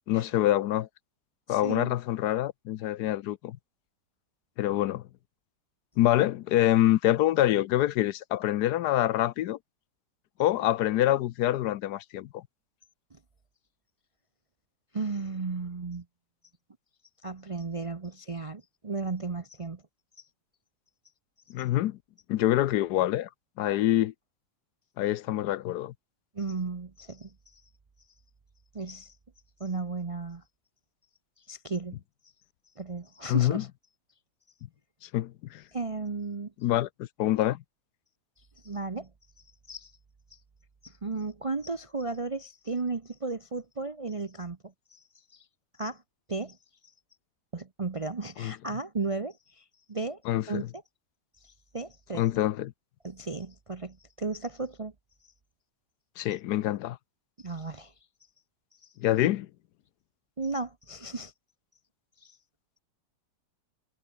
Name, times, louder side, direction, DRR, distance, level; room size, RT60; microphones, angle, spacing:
voice 1, 0.1-0.9 1.5-3.6 4.6-5.0 6.0-9.6 10.4-12.4 21.5-22.0 22.3-23.3 23.6-24.1 25.0-25.9 33.3-33.6 35.1-35.6 36.6-37.6 48.4-48.5 50.3-50.7 52.1-52.7 56.2-57.0 59.0-59.5, left 13 dB, 75° left, 1.2 m, -26 dB
voice 2, 1.5-1.9 13.1-13.2 14.9-16.0 17.2-19.8 26.3-27.6 28.7-29.1 29.6-30.4 31.5-32.0 32.8-33.7 35.7-36.5 38.6-39.1 39.7-39.9 40.8-45.0 45.3-45.4 45.8-46.0 46.3-46.6 47.5-50.2 50.5-50.8 51.4-52.3 53.0-54.9 57.4-57.9 60.4-61.3 62.2-62.4, right 3 dB, 35° right, 0.5 m, -35 dB
omnidirectional pair, 1.8 m